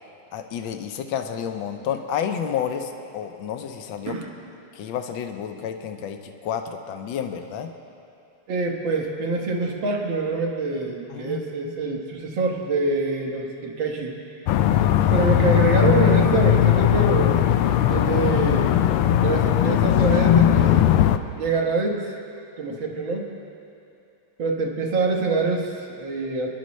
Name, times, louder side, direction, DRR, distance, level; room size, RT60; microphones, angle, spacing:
voice 1, 0.3-4.2 4.7-7.7 11.1-12.0 15.0-15.3, left 8 dB, 70° left, 6 dB, 1.5 m, -30 dB
voice 2, 8.5-14.2 15.1-17.6 17.9-18.8 19.2-20.9 21.2-22.1 22.6-23.3 24.4-26.5, right 3 dB, 65° right, 0 dB, 2.1 m, -25 dB
sound 1, 14.5-21.2, left 11 dB, 85° left, 1.5 m, -18 dB
27.0 x 11.0 x 3.2 m, 2.6 s
omnidirectional pair, 2.4 m